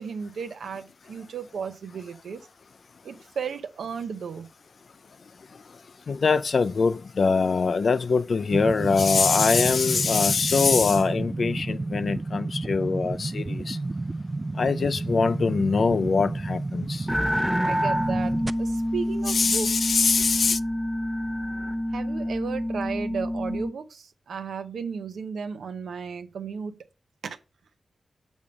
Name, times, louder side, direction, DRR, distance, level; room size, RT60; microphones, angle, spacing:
voice 1, 0.0-2.5 3.0-4.5 17.6-19.8 21.9-26.8 27.2-27.4, right 6 dB, 90° right, 0.6 m, -34 dB
voice 2, 6.1-13.8 14.6-17.1 19.3-20.6, left 4 dB, 65° left, 0.4 m, -23 dB
sound 1, 8.5-18.5, right 2 dB, 35° right, 0.3 m, -31 dB
sound 2, 17.1-23.7, equal, 5° left, 1.0 m, -27 dB
7.1 x 3.6 x 5.1 m
cardioid pair, 60°, 0 cm